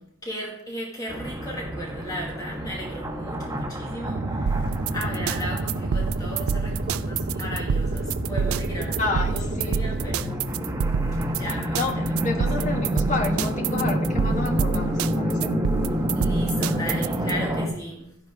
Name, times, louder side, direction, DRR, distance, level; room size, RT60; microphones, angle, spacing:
voice 1, 0.0-9.0 9.3-10.7 11.2-11.8 16.1-18.2, equal, 15° left, -3 dB, 2.0 m, -36 dB
sound 1, 1.1-17.7, equal, 15° right, 1.3 m, -29 dB
sound 2, 4.0-10.2, right 2 dB, 55° right, 0.9 m, -31 dB
sound 3, 4.5-17.3, right 6 dB, 85° right, 0.4 m, -27 dB
voice 2, 9.0-9.7 10.0-10.2 11.7-15.5, left 3 dB, 35° left, 1 dB, 1.7 m, -30 dB
12.5 x 10.5 x 3.6 m, 0.75 s
head